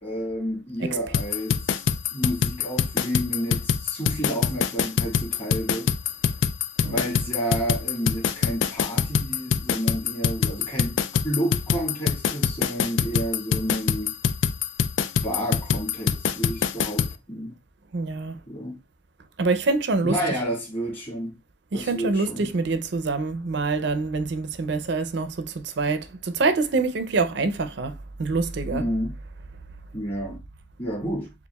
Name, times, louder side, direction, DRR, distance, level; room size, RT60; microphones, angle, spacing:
voice 1, 0.0-5.9 6.9-14.1 15.2-17.5 18.5-18.8 20.0-21.4 21.7-22.5 28.7-29.2 29.9-30.4 30.8-31.3, equal, 30° left, 1.6 m, -30 dB
sound 1, 1.1-17.1, left 7 dB, 75° left, 0.3 m, -24 dB
voice 2, 17.9-18.4 19.4-20.2 21.7-27.9 28.2-28.8 31.0-31.1, right 3 dB, 65° right, 0.5 m, -25 dB
6.8 x 2.5 x 2.2 m
head